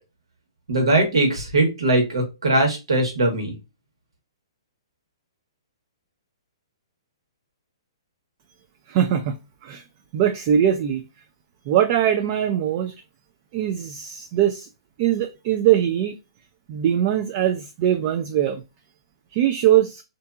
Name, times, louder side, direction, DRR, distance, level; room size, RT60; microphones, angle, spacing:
voice 1, 0.7-3.5, right 2 dB, 85° right, 1.3 m, -20 dB
voice 2, 8.9-9.8 10.1-11.0 11.7-12.9 13.5-14.7 15.0-16.2 16.7-18.6 19.3-20.0, right 10 dB, 40° right, 0.4 m, -21 dB
2.7 x 2.5 x 2.3 m
hypercardioid pair, 135°, 3 cm